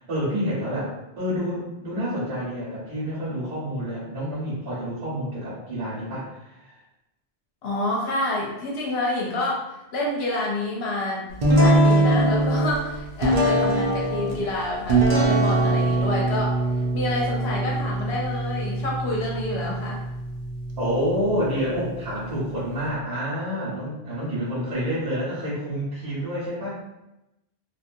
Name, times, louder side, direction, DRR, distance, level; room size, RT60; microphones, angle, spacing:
voice 1, 0.0-6.7 20.8-26.7, equal, 85° right, -10 dB, 1.5 m, -28 dB
voice 2, 7.6-9.6 9.9-11.3 11.5-16.6 16.9-20.0, left 1 dB, 75° left, -3 dB, 0.9 m, -28 dB
sound 1, 11.4-22.9, right 1 dB, 50° right, 0.6 m, -23 dB
2.9 x 2.5 x 2.6 m, 0.92 s
omnidirectional pair, 1.1 m